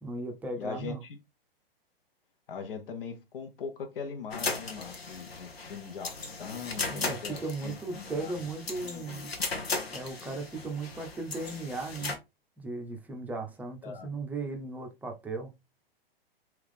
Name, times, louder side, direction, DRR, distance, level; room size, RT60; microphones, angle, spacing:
voice 1, 0.0-1.0 6.9-9.3 9.9-12.1 12.6-15.6, right 3 dB, 5° right, 0.6 m, -37 dB
voice 2, 0.6-1.0 2.5-8.3 8.8-9.0 13.8-14.1, left 6 dB, 65° left, 1.1 m, -40 dB
sound 1, 4.3-12.2, left 3 dB, 85° left, 1.1 m, -37 dB
3.5 x 3.0 x 3.5 m
hypercardioid pair, 115°, 30 cm